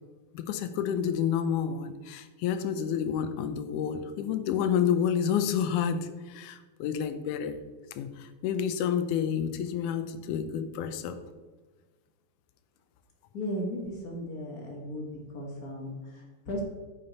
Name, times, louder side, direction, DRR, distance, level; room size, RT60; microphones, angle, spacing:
voice 1, 0.3-7.6 8.0-11.2, left 8 dB, 80° left, 10 dB, 2.1 m, -29 dB
voice 2, 13.3-15.1 15.3-16.6, equal, 45° left, 0 dB, 1.2 m, -36 dB
9.3 x 6.9 x 4.0 m, 1.3 s
omnidirectional pair, 3.6 m